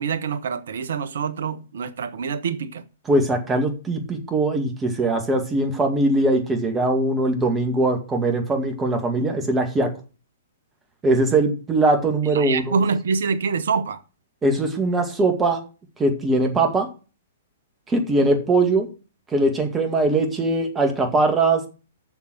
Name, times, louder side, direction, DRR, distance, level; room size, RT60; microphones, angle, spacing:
voice 1, 0.0-2.8 12.3-14.0, right 5 dB, 60° right, 0.9 m, -25 dB
voice 2, 3.1-9.9 11.0-12.8 14.4-15.6 16.0-16.9 17.9-18.9 19.3-21.6, right 2 dB, 15° right, 2.1 m, -21 dB
7.2 x 6.8 x 7.9 m
figure-of-eight pair, 115°, 0 cm